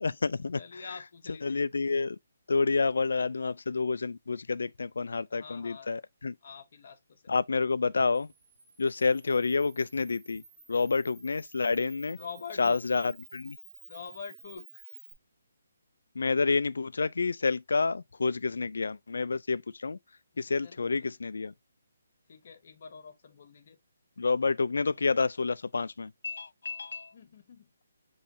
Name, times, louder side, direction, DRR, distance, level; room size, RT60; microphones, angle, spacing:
voice 1, 0.0-0.6 1.4-2.2 2.5-6.3 7.3-8.3 8.8-10.4 10.7-12.2 12.6-13.6 16.2-20.0 20.4-21.5 24.2-27.1, left 4 dB, 85° left, 0.3 m, -29 dB
voice 2, 0.5-1.6 5.3-5.9 6.4-7.2 12.1-12.8 13.9-14.9 20.3-21.2 22.3-23.8 27.1-27.7, left 6 dB, 45° left, 0.9 m, -46 dB
Camera, 8.1-15.1, right 3 dB, 20° right, 0.9 m, -53 dB
5.4 x 3.1 x 2.6 m
hypercardioid pair, 170°, 0 cm